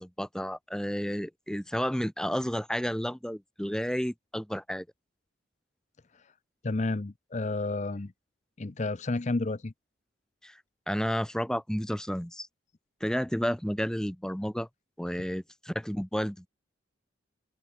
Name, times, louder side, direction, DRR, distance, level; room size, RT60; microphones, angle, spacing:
voice 1, 0.0-4.8 10.4-10.6 10.9-12.5 13.0-14.7 15.0-16.5, equal, 5° left, 1.0 m, -31 dB
voice 2, 6.6-8.1 8.6-9.7, left 2 dB, 35° left, 0.6 m, -31 dB
open air
head